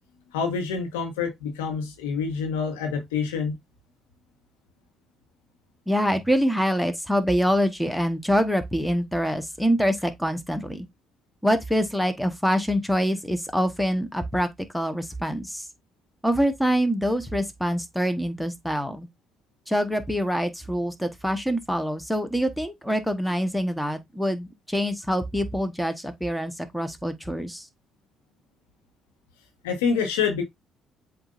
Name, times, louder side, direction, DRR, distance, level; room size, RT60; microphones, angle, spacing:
voice 1, 0.3-3.5 29.6-30.4, left 6 dB, 90° left, 1.2 m, -27 dB
voice 2, 5.9-10.9 11.4-14.5 14.7-15.7 16.2-19.1 19.7-27.7, equal, ahead, 1.1 m, -25 dB
7.8 x 2.6 x 2.4 m
hypercardioid pair, 55°, 0 cm